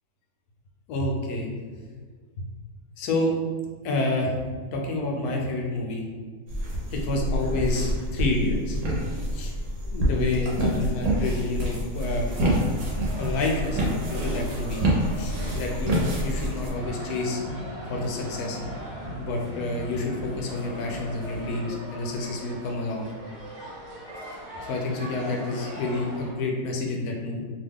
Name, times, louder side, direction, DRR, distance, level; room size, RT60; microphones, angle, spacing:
voice 1, 0.9-1.5 2.4-2.5 3.0-3.4 3.8-4.4 4.7-6.0 6.9-8.8 9.3-9.5 9.8-12.6 13.2-14.8 15.2-17.4 17.9-18.6 19.2-23.1 24.7-27.4, left 2 dB, 80° left, 0 dB, 1.1 m, -29 dB
sound 1, 6.5-16.7, right 1 dB, 75° right, 1.1 m, -27 dB
sound 2, 12.2-26.3, equal, 50° right, 0.6 m, -41 dB
sound 3, 16.2-21.6, equal, 25° right, 0.9 m, -39 dB
2.8 x 2.1 x 3.5 m, 1.5 s
omnidirectional pair, 1.6 m